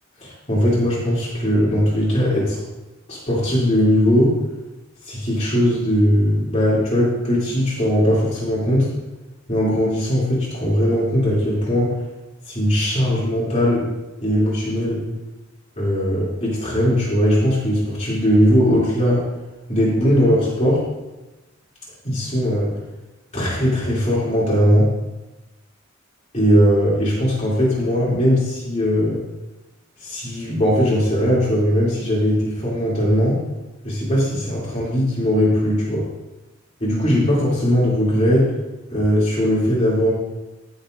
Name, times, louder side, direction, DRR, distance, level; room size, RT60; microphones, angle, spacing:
voice 1, 0.2-2.6 3.1-4.4 5.0-8.9 9.5-11.9 12.5-13.9 14.2-15.0 15.8-19.2 19.7-20.8 22.0-22.7 23.3-24.9 26.3-29.2 30.0-33.4 33.8-36.0 36.8-38.5 38.9-40.1, equal, 35° left, -8 dB, 3.0 m, -19 dB
16.0 x 7.0 x 2.6 m, 1.1 s
head